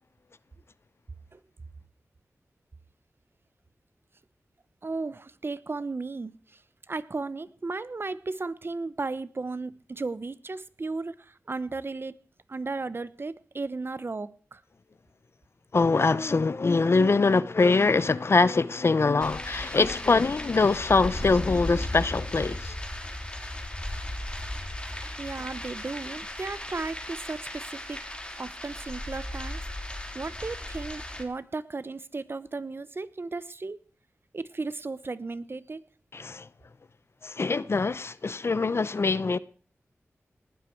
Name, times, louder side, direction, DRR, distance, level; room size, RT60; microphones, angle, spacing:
voice 1, 4.8-6.6 6.9-12.2 12.5-14.6 25.2-28.0 28.4-29.6 30.1-33.8 34.3-35.8, right 3 dB, 50° right, 1.0 m, -35 dB
voice 2, 15.7-22.8 36.1-36.5 37.2-39.4, left 4 dB, 55° left, 0.7 m, -23 dB
sound 1, 19.2-31.2, left 1 dB, 20° left, 3.3 m, -36 dB
19.0 x 12.0 x 4.6 m
wide cardioid pair, 60°, 5 cm